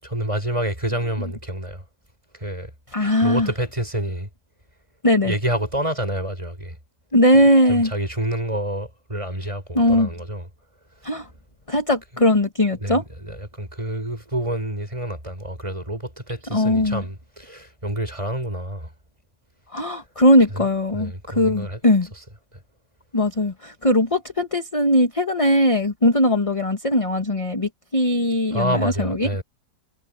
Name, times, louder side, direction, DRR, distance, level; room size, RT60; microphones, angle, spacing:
voice 1, 0.0-1.8 2.3-2.7 3.2-4.3 5.2-6.8 7.7-10.5 12.8-18.9 20.5-20.7 20.9-21.8 28.5-29.4, right 1 dB, 20° right, 7.7 m, -28 dB
voice 2, 2.9-3.5 5.0-5.3 7.1-7.9 9.7-10.1 11.0-11.3 11.7-13.0 16.5-17.0 19.7-22.1 23.1-29.3, left 1 dB, 20° left, 1.7 m, -19 dB
omnidirectional pair, 1.8 m